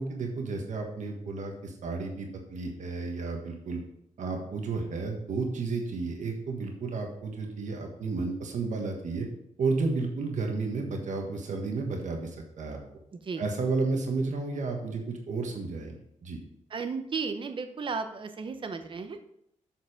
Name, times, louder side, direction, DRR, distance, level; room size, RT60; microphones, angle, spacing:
voice 1, 0.0-3.8 4.2-9.3 9.6-12.8 13.4-16.4, right 3 dB, 70° right, 2 dB, 1.5 m, -32 dB
voice 2, 13.1-13.4 16.7-19.2, right 5 dB, 40° right, 7 dB, 0.8 m, -34 dB
7.5 x 6.7 x 5.0 m, 0.75 s
wide cardioid pair, 160°, 13 cm